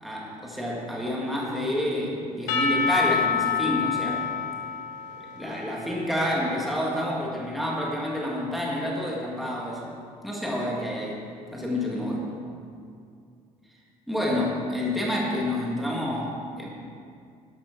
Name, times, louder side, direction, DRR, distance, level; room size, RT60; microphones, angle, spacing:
voice 1, 0.0-4.2 5.4-9.9 10.2-11.2 11.5-12.2 14.1-16.7, left 1 dB, ahead, -4 dB, 1.8 m, -28 dB
Percussion / Church bell, 2.5-6.3, left 6 dB, 85° left, 1.3 m, -28 dB
12.5 x 6.0 x 5.9 m, 2.3 s
cardioid pair, 155°, 13 cm